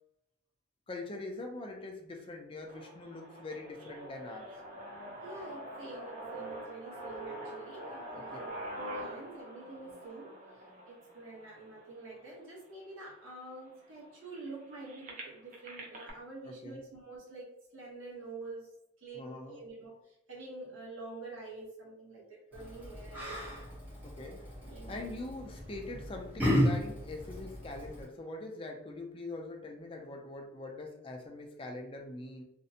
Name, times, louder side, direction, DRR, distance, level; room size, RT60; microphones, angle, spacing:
voice 1, 0.9-4.5 8.1-8.4 16.4-16.8 19.1-19.6 24.0-24.4 24.9-32.4, left 2 dB, 25° left, 2 dB, 0.3 m, -43 dB
sound 1, 2.7-12.6 13.3-13.4 13.6-16.1, right 1 dB, 40° right, 0.4 m, -45 dB
voice 2, 5.2-23.6 24.7-25.2, right 2 dB, 85° right, -4 dB, 0.8 m, -47 dB
Yell, 22.5-28.0, equal, 10° right, 0.8 m, -34 dB
2.5 x 2.1 x 2.6 m, 0.78 s
head